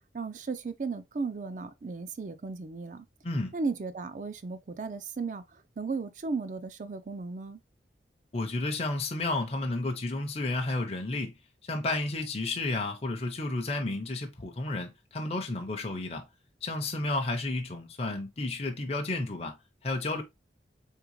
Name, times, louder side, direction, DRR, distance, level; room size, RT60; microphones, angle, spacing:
voice 1, 0.1-3.1 3.5-7.6, right 4 dB, 45° right, 0.4 m, -35 dB
voice 2, 3.2-3.5 8.3-11.3 11.6-16.2 16.6-19.6 19.8-20.2, left 2 dB, 35° left, 0.6 m, -32 dB
3.7 x 3.4 x 3.0 m
head